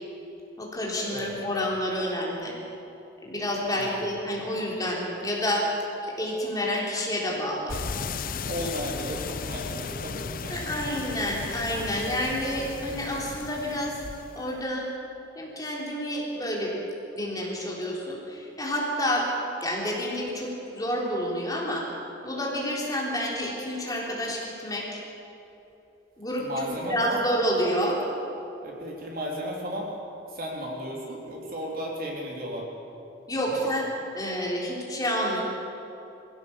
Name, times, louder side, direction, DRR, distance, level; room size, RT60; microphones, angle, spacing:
voice 1, 0.6-2.5 3.2-5.7 6.0-7.8 10.5-14.0 14.3-14.9 15.4-16.7 17.1-19.3 19.6-21.8 22.2-24.9 26.2-28.0 33.3-33.9 34.1-35.4, equal, 20° left, -3 dB, 3.7 m, -29 dB
sound 1, 7.7-14.6, left 5 dB, 45° left, 0.6 m, -35 dB
voice 2, 8.4-10.7 26.4-27.2 28.6-29.9 30.3-32.6 33.5-33.6, equal, 45° right, -2 dB, 3.5 m, -34 dB
22.5 x 16.5 x 7.2 m, 2.9 s
head